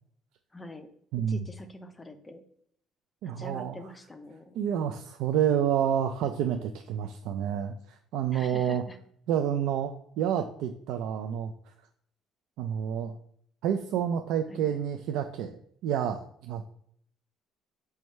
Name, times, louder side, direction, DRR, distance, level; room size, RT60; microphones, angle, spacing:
voice 1, 0.5-0.9 1.3-2.4 3.4-4.6 8.3-9.0 14.5-14.6, left 1 dB, 10° left, 8 dB, 0.4 m, -44 dB
voice 2, 1.1-1.4 3.2-3.8 4.5-8.8 9.3-11.7 12.6-13.2 13.6-16.7, right 9 dB, 75° right, 5 dB, 0.3 m, -29 dB
4.7 x 2.2 x 4.1 m, 0.65 s
cardioid pair, 165°, 0 cm